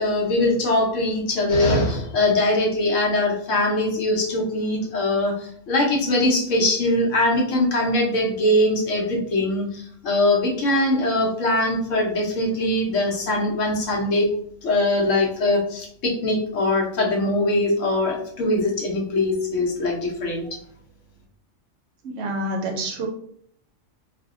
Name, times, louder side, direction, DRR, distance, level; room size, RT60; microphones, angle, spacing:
voice 1, 0.0-5.3 5.7-14.3 14.6-20.6, left 1 dB, 75° left, 0 dB, 1.1 m, -22 dB
voice 2, 22.0-23.1, right 1 dB, 65° right, 2 dB, 0.8 m, -27 dB
2.6 x 2.1 x 3.5 m, 0.65 s
omnidirectional pair, 1.3 m